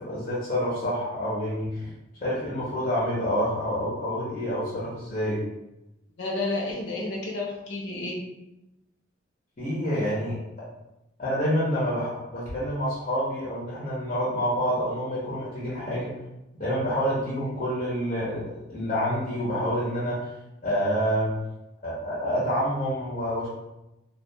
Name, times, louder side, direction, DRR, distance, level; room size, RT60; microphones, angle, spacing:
voice 1, 0.0-1.9 2.2-5.4 9.6-10.4 11.2-16.1 16.6-20.3 20.6-21.3 21.8-23.5, equal, 35° left, -8 dB, 0.7 m, -27 dB
voice 2, 6.2-8.2, left 2 dB, 70° left, -2 dB, 0.6 m, -30 dB
2.3 x 2.2 x 2.6 m, 0.94 s
head